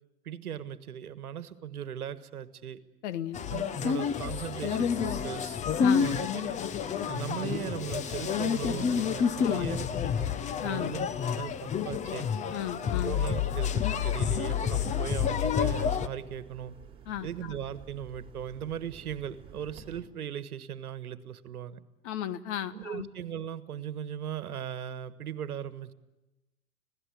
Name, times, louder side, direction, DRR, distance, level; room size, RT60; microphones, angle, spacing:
voice 1, 0.2-2.8 3.5-6.6 7.0-9.9 10.2-10.3 10.6-11.1 11.3-12.3 13.0-16.7 17.2-21.8 22.7-25.9, right 9 dB, 70° right, 14 dB, 1.5 m, -38 dB
voice 2, 3.0-3.4 5.8-6.1 9.4-9.8 10.6-11.0 12.5-13.2 17.0-17.3 22.0-23.1, left 11 dB, 50° left, 12 dB, 1.5 m, -34 dB
sound 1, 3.3-16.1, left 7 dB, 15° left, 0.8 m, -29 dB
sound 2, 14.3-20.0, right 6 dB, 10° right, 4.0 m, -50 dB
26.5 x 17.5 x 9.9 m, 1.0 s
hypercardioid pair, 110°, 46 cm